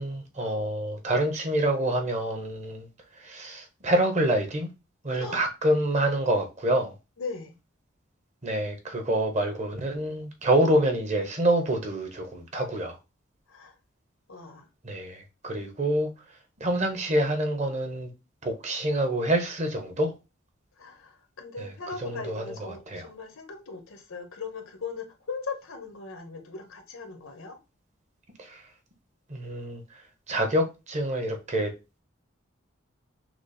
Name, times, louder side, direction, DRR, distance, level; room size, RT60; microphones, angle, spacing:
voice 1, 0.0-2.9 3.2-4.7 5.0-6.9 8.4-13.0 14.8-16.1 16.6-18.1 18.4-20.2 21.6-21.7 22.0-23.1 28.4-28.6 29.3-30.0 30.3-31.7, right 1 dB, 35° right, 0.9 m, -27 dB
voice 2, 5.1-5.4 7.2-7.5 13.5-13.7 14.3-14.7 20.8-27.6, left 4 dB, 90° left, 1.1 m, -39 dB
6.0 x 2.0 x 4.1 m
head